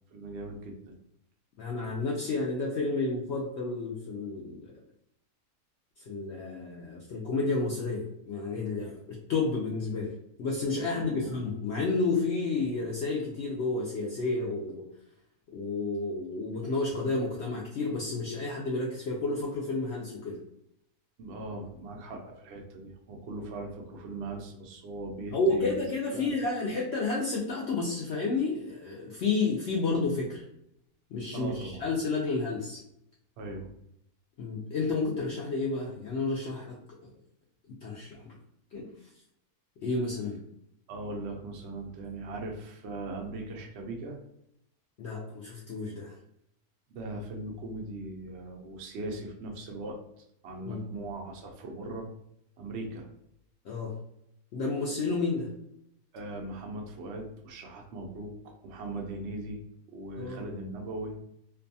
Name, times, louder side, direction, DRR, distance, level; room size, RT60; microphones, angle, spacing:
voice 1, 0.1-0.9 10.9-11.4 21.2-25.7 26.1-26.3 31.3-31.8 33.4-33.7 40.9-44.2 46.9-50.0 50.4-52.1 52.6-53.1 56.1-58.3 58.6-59.6 59.9-61.1, right 2 dB, 70° right, 1 dB, 0.6 m, -39 dB
voice 2, 1.6-4.7 6.0-14.8 15.5-20.4 25.3-30.4 31.1-32.8 34.4-37.1 37.8-38.3 38.7-38.9 39.8-40.4 45.0-46.2 50.7-50.8 53.6-54.0 54.5-55.6 60.2-60.5, left 3 dB, 70° left, -3 dB, 0.6 m, -31 dB
2.6 x 2.2 x 2.6 m, 0.76 s
omnidirectional pair, 1.6 m